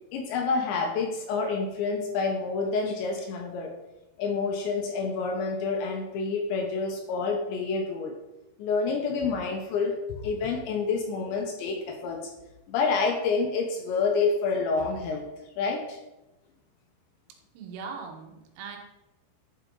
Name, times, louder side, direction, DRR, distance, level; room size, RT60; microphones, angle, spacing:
voice 1, 0.1-3.7 4.2-8.1 8.6-12.2 12.7-15.2 15.6-16.0, left 4 dB, 75° left, 2 dB, 2.9 m, -28 dB
voice 2, 17.6-18.8, right 5 dB, 85° right, 2 dB, 4.0 m, -40 dB
11.5 x 5.8 x 3.9 m, 0.97 s
omnidirectional pair, 6.0 m